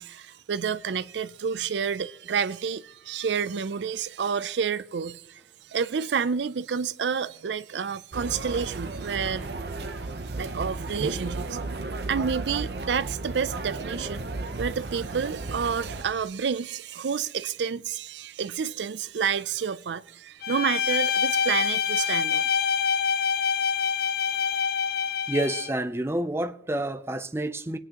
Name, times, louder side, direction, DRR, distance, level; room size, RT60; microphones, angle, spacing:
voice 1, 0.0-5.4 5.7-9.5 10.4-11.6 12.1-14.3 14.6-22.5, right 6 dB, 85° right, 0.4 m, -29 dB
sound 1, 8.1-16.0, right 3 dB, 65° right, 0.8 m, -34 dB
Bowed string instrument, 20.4-25.8, left 7 dB, 55° left, 0.5 m, -26 dB
voice 2, 25.3-27.8, right 1 dB, 15° right, 0.5 m, -28 dB
21.0 x 9.0 x 3.0 m
head